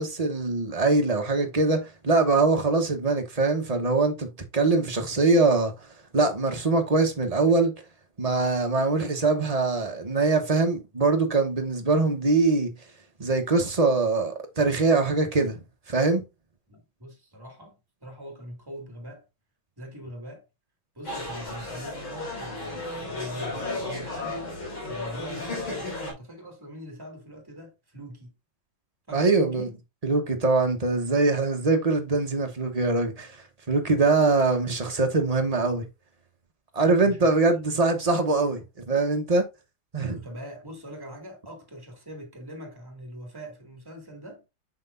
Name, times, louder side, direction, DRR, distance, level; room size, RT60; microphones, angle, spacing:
voice 1, 0.0-5.7 6.1-7.7 8.2-12.7 13.2-15.6 15.9-16.2 29.1-29.7 30.0-33.4 33.7-35.9 36.7-39.4 39.9-40.2, right 3 dB, 25° right, 0.8 m, -23 dB
voice 2, 16.7-17.8 18.0-19.2 19.8-20.4 20.9-24.5 24.8-28.3 29.1-29.7 36.7-37.9 40.1-44.4, equal, 10° right, 2.2 m, -42 dB
sound 1, 21.0-26.1, left 2 dB, 70° left, 3.9 m, -34 dB
6.5 x 6.0 x 2.6 m
omnidirectional pair, 2.2 m